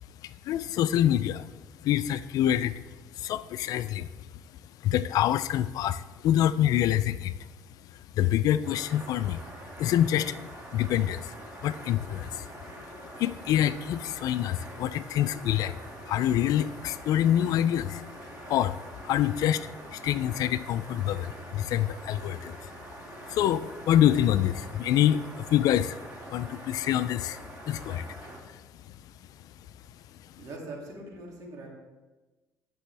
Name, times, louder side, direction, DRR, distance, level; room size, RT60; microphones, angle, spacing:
voice 1, 0.2-1.5 1.8-2.8 3.1-4.1 4.8-7.4 8.1-9.4 9.8-10.4 10.7-11.4 11.6-12.5 13.2-15.8 16.1-18.0 18.5-22.8 23.3-26.0 26.3-29.0 30.2-30.3, left 11 dB, 70° left, 15 dB, 0.4 m, -26 dB
sound 1, 8.6-28.4, right 1 dB, 30° right, 2.1 m, -45 dB
voice 2, 30.4-31.7, right 2 dB, 60° right, -1 dB, 2.4 m, -41 dB
10.5 x 6.1 x 3.4 m, 1.2 s
cardioid pair, 90°, 7 cm